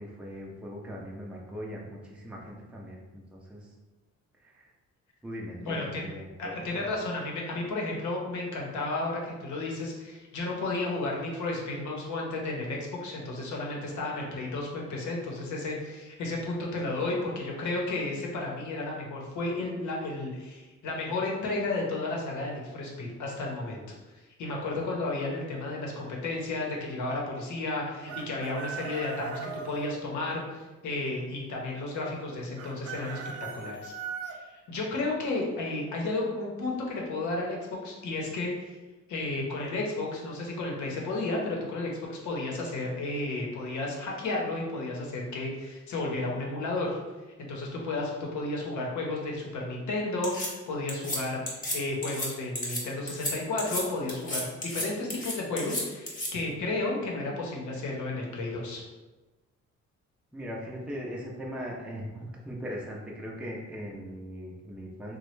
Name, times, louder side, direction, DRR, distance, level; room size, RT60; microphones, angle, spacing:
voice 1, 0.0-3.7 4.4-4.7 5.2-6.9 60.3-65.2, equal, 5° right, -3 dB, 0.5 m, -40 dB
voice 2, 5.6-6.1 6.4-24.0 24.4-33.9 34.3-38.8 39.1-47.0 47.4-58.8, left 2 dB, 70° left, -1 dB, 0.8 m, -33 dB
Chicken rooster, 28.1-29.9 32.6-34.4, right 5 dB, 55° right, 0.5 m, -38 dB
sound 1, 50.2-50.5 50.9-51.2 51.5-51.8 52.0-52.3 52.6-52.8 53.1-53.3 53.6-53.8 54.1-54.8 55.1-56.3, left 1 dB, 25° left, 1.0 m, -32 dB
3.0 x 2.2 x 3.1 m, 1.2 s
cardioid pair, 90°, 30 cm